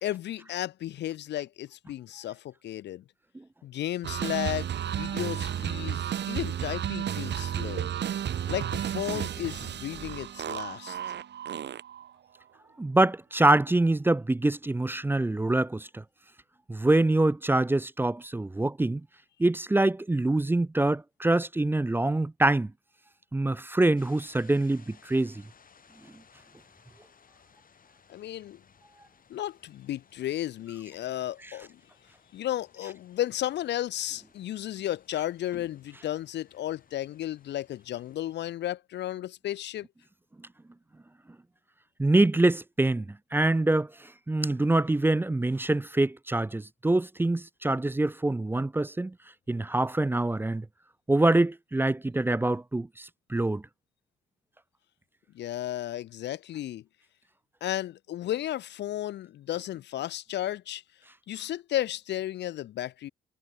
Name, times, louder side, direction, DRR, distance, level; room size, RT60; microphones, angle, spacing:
voice 1, 0.0-3.0 3.6-7.9 8.5-11.0 28.1-28.6 29.3-31.8 32.3-39.9 55.3-56.8 57.6-60.8 61.3-63.1, left 13 dB, 60° left, 0.5 m, -34 dB
sound 1, 4.0-12.1, right 10 dB, 60° right, 2.0 m, -32 dB
sound 2, 7.8-13.2 14.3-14.4 15.2-15.4, right 14 dB, 85° right, 5.9 m, -51 dB
voice 2, 12.8-16.0 16.7-19.0 19.4-22.7 23.3-25.4 42.0-49.1 49.5-50.7 51.1-53.6, right 2 dB, 10° right, 0.5 m, -25 dB
sound 3, 24.0-38.5, left 6 dB, 45° left, 7.5 m, -61 dB
cardioid pair, 90°, 20 cm